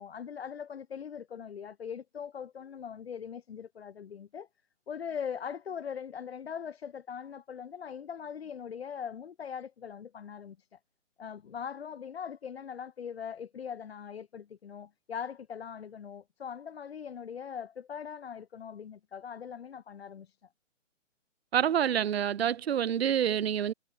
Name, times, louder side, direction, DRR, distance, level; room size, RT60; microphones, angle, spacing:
voice 1, 0.0-4.5 4.9-10.8 11.2-20.4, left 7 dB, 50° left, 2.8 m, -41 dB
voice 2, 21.5-23.7, right 9 dB, 50° right, 0.6 m, -27 dB
figure-of-eight pair, 150°, 39 cm